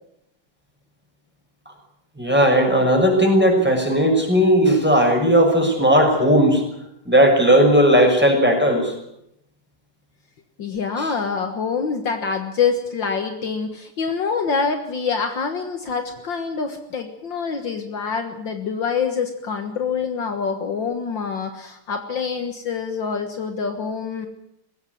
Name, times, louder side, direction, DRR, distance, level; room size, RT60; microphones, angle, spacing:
voice 1, 2.2-6.6 7.1-8.9 11.0-11.1, equal, 5° right, 2 dB, 6.0 m, -16 dB
voice 2, 10.6-24.3, left 5 dB, 60° left, 6 dB, 2.1 m, -26 dB
20.5 x 16.5 x 9.4 m, 0.78 s
omnidirectional pair, 2.3 m